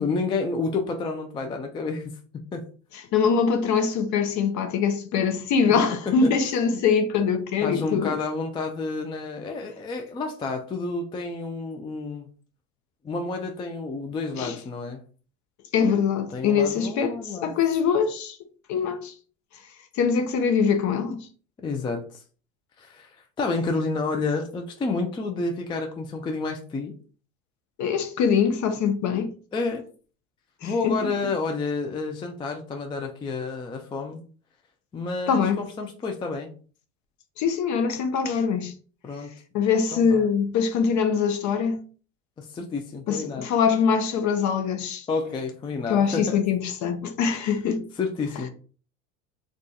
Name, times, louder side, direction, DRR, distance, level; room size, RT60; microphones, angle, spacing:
voice 1, 0.0-2.2 2.5-2.6 5.9-6.3 7.6-12.3 13.0-15.0 16.3-17.6 21.6-22.2 22.8-26.9 29.5-29.8 30.6-34.2 34.9-36.5 39.0-39.3 39.9-40.3 42.4-43.5 45.1-46.4 48.0-48.5, left 3 dB, 15° left, 0.3 m, -30 dB
voice 2, 3.1-8.1 14.4-14.5 15.7-17.1 17.4-18.4 18.7-19.1 20.0-21.3 27.8-29.3 30.6-31.0 35.3-35.6 37.4-38.7 39.5-41.8 43.1-45.1 45.9-47.8, left 6 dB, 45° left, 0.7 m, -23 dB
2.4 x 2.3 x 3.9 m
hypercardioid pair, 90°, 40 cm